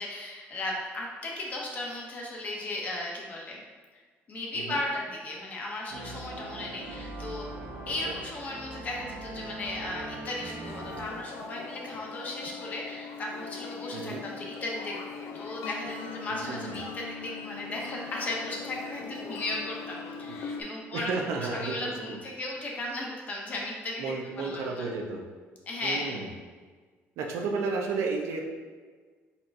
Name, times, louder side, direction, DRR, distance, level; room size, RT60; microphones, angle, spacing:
voice 1, 0.0-3.6 3.9-4.0 4.3-7.5 7.9-24.0 24.4-24.9 25.7-26.2, left 2 dB, 35° left, -2 dB, 0.8 m, -36 dB
sound 1, 5.9-11.1, right 1 dB, 45° right, 0.7 m, -41 dB
sound 2, 10.6-20.6, left 5 dB, 80° left, 0.5 m, -41 dB
voice 2, 13.9-14.2 16.5-16.7 20.9-22.2 24.0-25.2 25.8-26.3 27.2-28.5, right 4 dB, 90° right, 1 dB, 0.7 m, -32 dB
4.5 x 4.2 x 2.6 m, 1.5 s
cardioid pair, 160°, 5 cm